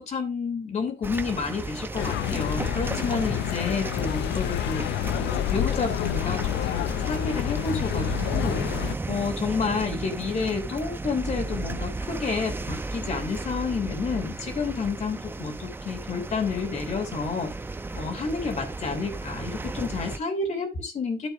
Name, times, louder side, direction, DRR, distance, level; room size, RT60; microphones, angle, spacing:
voice 1, 0.0-4.9 5.2-8.6 9.1-17.5 17.9-21.3, left 5 dB, 40° left, 6 dB, 3.1 m, -30 dB
sound 1, 1.0-20.2, right 3 dB, 10° right, 0.6 m, -34 dB
sound 2, 2.0-8.9, left 14 dB, 85° left, 0.5 m, -28 dB
14.0 x 7.1 x 2.6 m, 0.24 s
cardioid pair, 145°, 17 cm